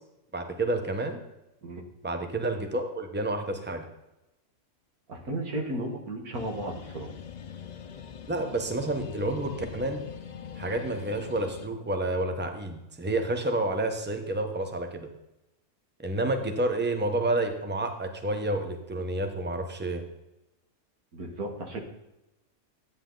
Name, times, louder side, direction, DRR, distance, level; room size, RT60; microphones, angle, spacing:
voice 1, 0.3-1.2 2.0-3.9 8.3-10.0 10.5-15.1 16.0-20.0, right 2 dB, 10° right, 5 dB, 1.1 m, -29 dB
voice 2, 5.1-7.1 21.1-21.8, right 1 dB, 90° right, 2 dB, 2.3 m, -34 dB
sound 1, 6.3-11.7, left 7 dB, 55° left, 0.4 m, -42 dB
13.0 x 9.1 x 4.0 m, 0.93 s
omnidirectional pair, 1.5 m